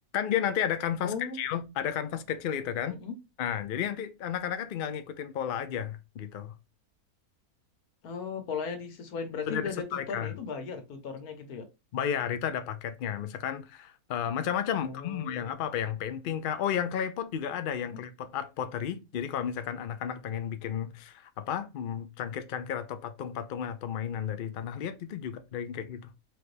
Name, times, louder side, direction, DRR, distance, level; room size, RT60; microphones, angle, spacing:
voice 1, 0.1-3.0 3.4-6.5 9.5-10.3 11.9-26.1, left 9 dB, 90° left, 0.4 m, -33 dB
voice 2, 1.0-1.4 2.9-3.1 8.0-11.7 14.8-15.6 17.9-18.0, left 5 dB, 75° left, 1.5 m, -37 dB
4.5 x 3.4 x 2.6 m
omnidirectional pair, 1.6 m